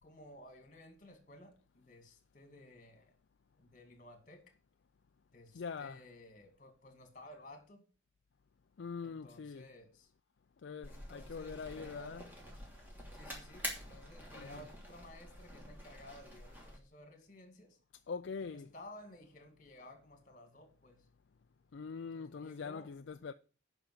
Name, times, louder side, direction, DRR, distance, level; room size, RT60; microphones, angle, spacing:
voice 1, 0.0-3.2 3.6-4.4 5.3-7.8 9.0-10.1 10.8-12.3 13.1-17.8 18.4-21.0 22.1-22.9, left 1 dB, 40° left, 2.3 m, -55 dB
voice 2, 5.5-6.0 8.8-9.7 10.6-12.2 14.4-14.6 18.1-18.7 21.7-23.3, left 5 dB, 65° left, 0.4 m, -43 dB
sound 1, 10.8-16.8, equal, 10° right, 2.7 m, -47 dB
9.0 x 5.9 x 7.7 m
head